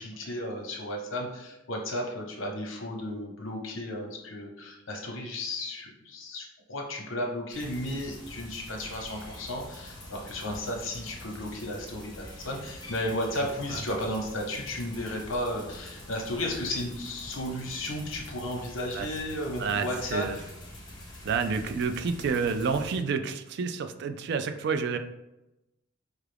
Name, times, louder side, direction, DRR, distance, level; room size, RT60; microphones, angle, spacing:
voice 1, 0.0-20.4, left 1 dB, 70° left, 1 dB, 0.9 m, -34 dB
sound 1, 7.5-23.0, left 1 dB, 20° left, 0.9 m, -45 dB
voice 2, 19.6-20.4 21.2-25.0, right 5 dB, 55° right, 8 dB, 0.3 m, -29 dB
4.7 x 2.4 x 3.3 m, 0.94 s
head